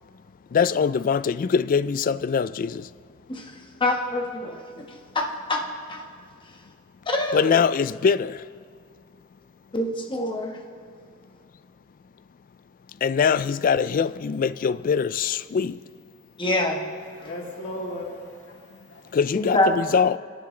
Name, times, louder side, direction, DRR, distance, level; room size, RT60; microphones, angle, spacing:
voice 1, 0.5-2.9 7.3-8.4 13.0-15.8 19.1-20.2, left 6 dB, 40° left, 0.3 m, -23 dB
voice 2, 3.3-4.9 5.1-5.6 5.9-6.0 7.1-7.6 9.7-10.6 16.4-16.8 19.3-19.8, left 1 dB, 25° left, 1.3 m, -25 dB
voice 3, 17.1-19.2, left 1 dB, 60° left, 2.6 m, -37 dB
24.5 x 11.0 x 3.2 m
head